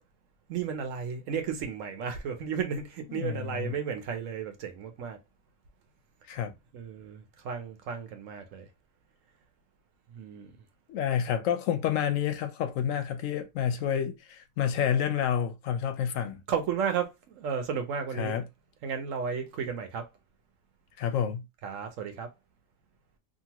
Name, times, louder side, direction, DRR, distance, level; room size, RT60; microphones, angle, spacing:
voice 1, 0.5-5.2 6.7-8.7 10.1-10.5 16.5-18.4 18.8-20.1 21.6-22.3, right 7 dB, 70° right, 1.0 m, -33 dB
voice 2, 3.1-3.8 6.3-6.5 10.9-16.4 18.2-18.4 21.0-21.4, left 9 dB, 70° left, 0.9 m, -29 dB
2.8 x 2.5 x 2.8 m
omnidirectional pair, 1.5 m